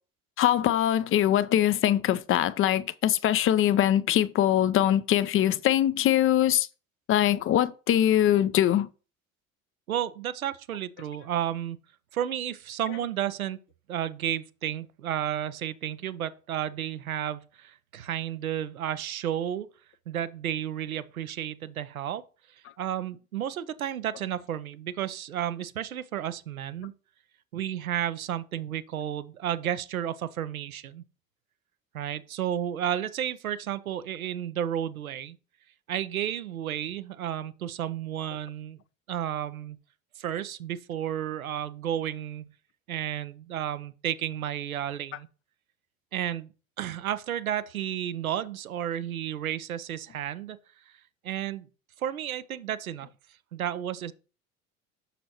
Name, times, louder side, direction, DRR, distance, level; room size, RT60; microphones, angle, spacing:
voice 1, 0.4-6.7 7.1-8.9, left 11 dB, 35° left, 0.4 m, -22 dB
voice 2, 9.9-11.8 12.1-13.6 13.9-19.7 20.1-22.2 22.8-26.9 27.5-31.0 31.9-35.4 35.9-38.8 39.1-39.8 40.2-42.5 42.9-45.3 46.1-46.5 46.8-50.6 51.2-51.7 52.0-53.1 53.5-54.1, right 10 dB, 85° right, 0.6 m, -32 dB
6.6 x 6.2 x 2.9 m
figure-of-eight pair, 65°, 41 cm